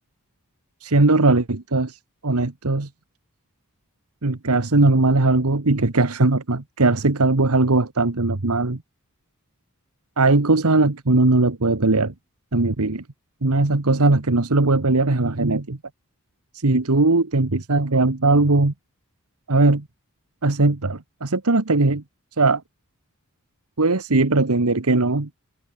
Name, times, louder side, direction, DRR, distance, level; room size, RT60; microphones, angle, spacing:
voice 1, 0.8-2.9 4.2-8.8 10.2-12.1 12.5-13.0 13.4-15.8 16.5-18.7 19.5-19.8 20.4-22.0 22.4-22.6 23.8-25.3, right 2 dB, 85° right, 1.4 m, -19 dB
head